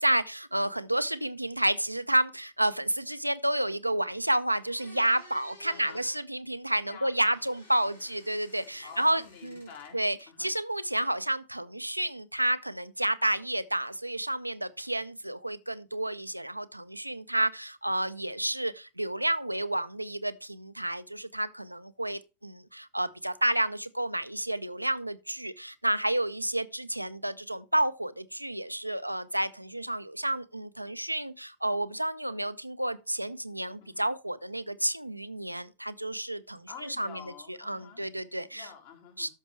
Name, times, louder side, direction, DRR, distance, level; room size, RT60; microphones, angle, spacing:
voice 1, 0.0-9.7 9.9-37.1 37.7-38.7 39.2-39.3, right 1 dB, 85° right, 0.6 m, -30 dB
sound 1, 4.5-6.2 7.1-9.9 10.2-10.9, left 2 dB, 75° left, 4.1 m, -55 dB
voice 2, 5.7-6.0 6.8-7.4 8.8-10.5 33.8-34.1 36.7-38.0 38.5-39.3, left 6 dB, 55° left, 2.7 m, -48 dB
13.0 x 6.1 x 3.2 m
figure-of-eight pair, 90°, 0 cm